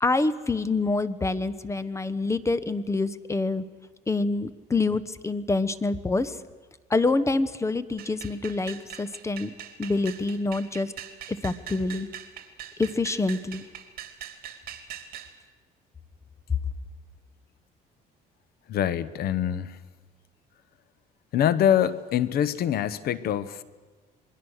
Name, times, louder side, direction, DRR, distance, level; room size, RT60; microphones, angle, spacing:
voice 1, 0.0-3.6 4.1-6.4 6.9-9.5 9.8-10.9 11.3-12.1 12.8-13.6, left 3 dB, 15° left, 15 dB, 1.1 m, -26 dB
sound 1, 8.0-15.3, right 9 dB, 60° right, 2.6 m, -42 dB
voice 2, 18.7-19.8 21.3-23.6, left 10 dB, 65° left, 16 dB, 1.1 m, -24 dB
27.5 x 21.5 x 6.5 m, 1.4 s
cardioid pair, 110°, 17 cm